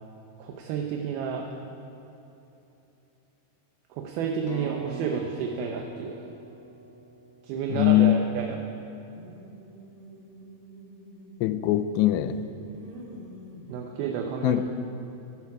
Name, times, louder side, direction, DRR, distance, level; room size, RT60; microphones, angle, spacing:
voice 1, 0.4-1.4 3.9-6.3 7.4-8.6 13.7-14.6, right 6 dB, 75° right, 2 dB, 2.5 m, -31 dB
sound 1, 4.5-8.2, right 4 dB, 20° left, 1.5 m, -45 dB
voice 2, 7.7-8.2 11.4-12.4 14.4-14.6, left 14 dB, 85° left, 11 dB, 2.8 m, -21 dB
sound 2, 9.0-11.9 12.3-13.8, right 1 dB, 45° right, 2.1 m, -47 dB
15.5 x 13.0 x 4.9 m, 3.0 s
omnidirectional pair, 4.9 m